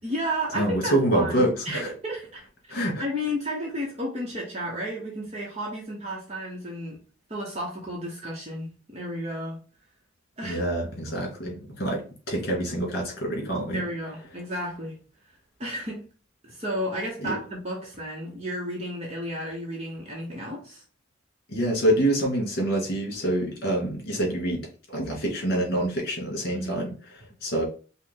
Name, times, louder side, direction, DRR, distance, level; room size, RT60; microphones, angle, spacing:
voice 1, 0.0-7.0 7.3-9.6 10.4-10.6 13.7-15.0 15.6-16.0 16.4-20.8 26.5-26.8, equal, 30° right, 1.1 m, -33 dB
voice 2, 0.5-1.9 2.7-3.0 10.4-13.8 17.2-17.4 21.5-26.9 27.4-27.7, right 1 dB, 50° left, 2.4 m, -26 dB
5.3 x 2.4 x 3.7 m
head